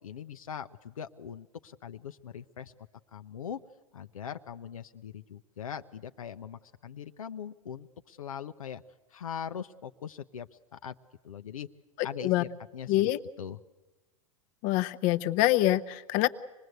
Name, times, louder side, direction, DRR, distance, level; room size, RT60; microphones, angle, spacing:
voice 1, 0.0-2.7 3.1-3.6 3.9-8.8 9.1-10.9 11.2-11.7 12.0-13.1 13.4-13.6, left 8 dB, 80° left, 8 dB, 0.8 m, -41 dB
voice 2, 12.9-13.2 14.6-16.3, left 15 dB, 45° left, 10 dB, 0.9 m, -25 dB
26.0 x 20.0 x 8.0 m, 1.1 s
hypercardioid pair, 95°, 18 cm